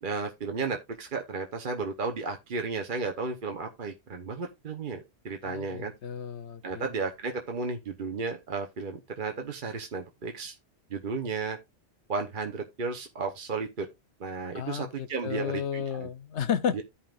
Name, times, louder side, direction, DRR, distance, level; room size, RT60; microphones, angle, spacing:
voice 1, 0.0-5.9 6.6-10.6 10.9-11.6 12.1-13.9 14.2-16.1 16.7-16.8, right 4 dB, 45° right, 1.0 m, -33 dB
voice 2, 5.5-6.6 14.5-16.8, left 8 dB, 65° left, 1.1 m, -32 dB
14.5 x 5.6 x 2.4 m
omnidirectional pair, 1.3 m